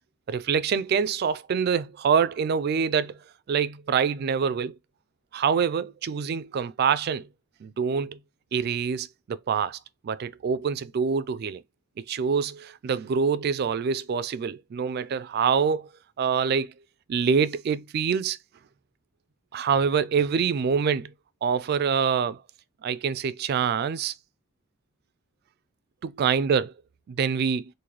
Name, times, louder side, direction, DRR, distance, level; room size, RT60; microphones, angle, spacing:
voice 1, 0.3-3.2 3.5-4.7 5.3-7.3 7.6-8.2 8.5-9.8 10.0-11.6 12.0-15.9 16.2-16.7 17.1-18.4 19.5-21.1 21.4-22.4 22.8-24.1 26.0-26.7 27.1-27.6, right 6 dB, 50° right, 0.3 m, -25 dB
3.8 x 2.5 x 3.0 m
head